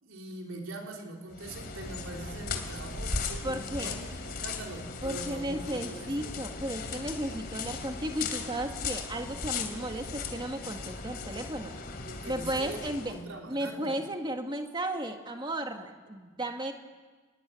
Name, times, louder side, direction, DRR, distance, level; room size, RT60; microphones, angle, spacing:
voice 1, 0.0-6.5 12.0-14.0, right 2 dB, 80° right, 1 dB, 4.2 m, -43 dB
sound 1, 1.3-13.2, left 4 dB, 45° left, 3.1 m, -37 dB
voice 2, 3.4-3.9 5.0-11.8 12.3-13.1 13.5-16.7, right 1 dB, 20° right, 4 dB, 2.0 m, -34 dB
29.5 x 21.0 x 9.0 m, 1.4 s
head